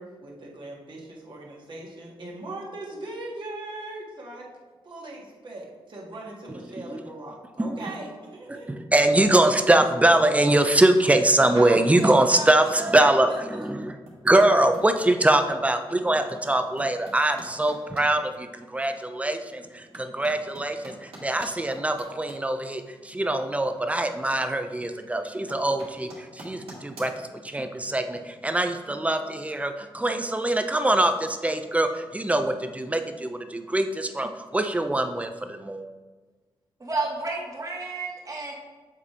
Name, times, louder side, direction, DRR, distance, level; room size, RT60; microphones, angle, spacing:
voice 1, 0.0-4.5 4.8-8.7 11.5-12.9 13.3-13.7, right 2 dB, 55° right, -3 dB, 1.7 m, -39 dB
voice 2, 8.5-13.9 14.2-35.8, right 1 dB, 15° right, 7 dB, 0.6 m, -23 dB
sound 1, 14.1-15.2 16.1-18.1 18.6-18.7 19.3-23.9 24.2-24.8 25.1-27.1, right 2 dB, 85° right, 2.0 m, -46 dB
voice 3, 36.8-38.5, right 3 dB, 35° right, -2 dB, 1.8 m, -31 dB
7.4 x 3.3 x 4.3 m, 1.4 s
cardioid pair, 60°, 10 cm